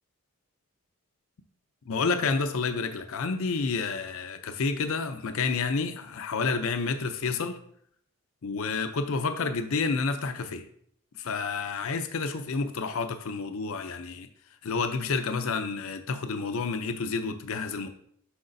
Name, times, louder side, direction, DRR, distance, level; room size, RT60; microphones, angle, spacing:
voice 1, 1.9-7.6 8.4-10.7 11.1-14.3 14.6-17.9, left 4 dB, 65° left, 0.5 m, -29 dB
7.8 x 5.8 x 2.6 m
head